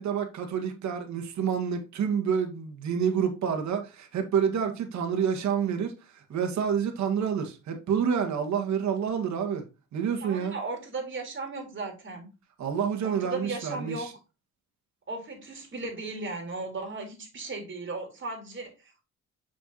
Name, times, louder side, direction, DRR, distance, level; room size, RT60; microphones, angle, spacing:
voice 1, 0.0-9.6 9.9-10.5 12.6-14.1, right 7 dB, 65° right, 1.8 m, -28 dB
voice 2, 10.2-12.3 13.0-14.1 15.1-19.0, right 3 dB, 40° right, 3.9 m, -36 dB
6.8 x 6.6 x 2.9 m
cardioid pair, 90°, 30 cm